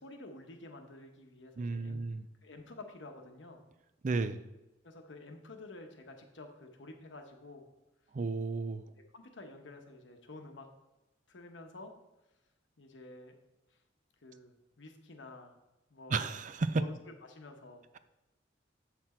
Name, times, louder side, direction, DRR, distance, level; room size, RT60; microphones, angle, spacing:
voice 1, 0.0-2.0 2.4-3.6 4.8-7.6 9.1-10.7 11.3-11.9 12.8-13.4 13.7-13.8 14.2-15.6 15.9-16.2 16.7-18.0, left 2 dB, 85° left, 4 dB, 1.1 m, -50 dB
voice 2, 1.6-2.2 4.0-4.4 8.1-8.9 16.1-16.8, right 3 dB, 45° right, 12 dB, 0.4 m, -33 dB
7.6 x 6.0 x 4.3 m, 0.99 s
head